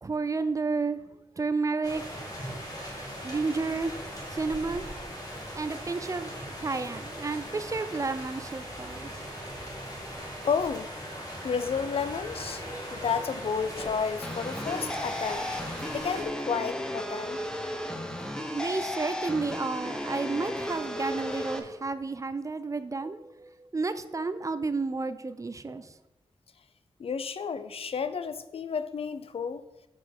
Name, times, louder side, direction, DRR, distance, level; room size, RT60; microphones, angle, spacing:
voice 1, 0.0-1.0 1.4-2.3 3.2-3.9 4.3-4.9 5.5-6.3 6.6-9.2 18.5-25.9, right 3 dB, 30° right, 12 dB, 0.4 m, -31 dB
sound 1, 1.8-16.2, equal, 35° left, 2.1 m, -39 dB
voice 2, 10.4-10.9 11.4-12.6 12.9-17.4 27.0-29.6, left 6 dB, 60° left, 12 dB, 0.5 m, -31 dB
sound 2, 14.2-21.6, left 1 dB, 5° left, 0.7 m, -34 dB
5.7 x 4.9 x 6.5 m, 0.95 s
wide cardioid pair, 110°, 11 cm